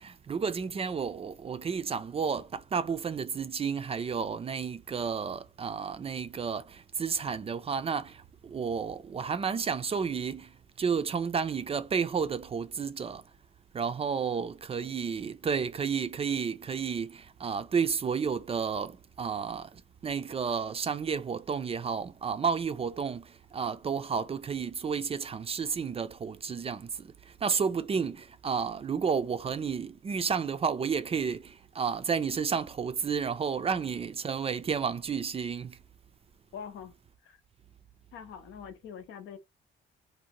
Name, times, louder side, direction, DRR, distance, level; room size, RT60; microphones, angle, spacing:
voice 1, 0.0-13.2 13.7-35.8, right 6 dB, 30° right, 0.3 m, -31 dB
voice 2, 36.5-36.9 37.2-37.4 38.1-39.4, left 7 dB, 80° left, 0.6 m, -44 dB
2.6 x 2.1 x 2.8 m
cardioid pair, 90°, 20 cm